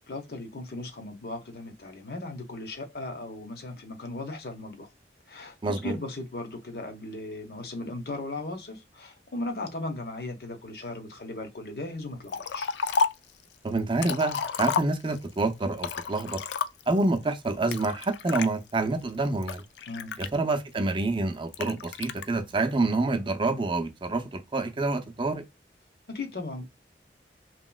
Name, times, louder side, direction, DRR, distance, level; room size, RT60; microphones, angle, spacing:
voice 1, 0.1-4.9 5.3-12.7 19.9-20.2 26.1-26.6, left 2 dB, 65° left, 0.8 m, -37 dB
voice 2, 5.6-6.0 13.6-16.4 16.9-19.6 20.2-25.4, right 2 dB, 30° right, 0.5 m, -27 dB
Liquid, 12.3-13.3 13.8-15.3 15.8-17.0 17.7-18.5 19.1-20.7 21.5-22.3, left 5 dB, 85° left, 0.4 m, -30 dB
3.0 x 2.9 x 2.2 m
head